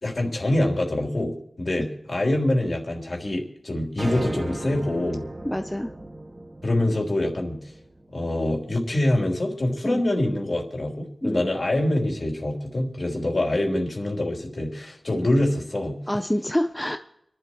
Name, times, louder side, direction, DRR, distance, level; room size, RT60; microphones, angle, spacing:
voice 1, 0.0-5.2 6.6-7.6 8.1-16.0, left 1 dB, 55° left, 0 dB, 3.4 m, -25 dB
sound 1, 4.0-8.4, right 1 dB, 40° right, 1.8 m, -36 dB
voice 2, 5.4-5.9 9.8-10.0 11.2-11.4 16.1-17.0, left 1 dB, 10° left, 6 dB, 0.7 m, -26 dB
28.5 x 11.5 x 3.1 m, 0.79 s
wide cardioid pair, 80°, 0 cm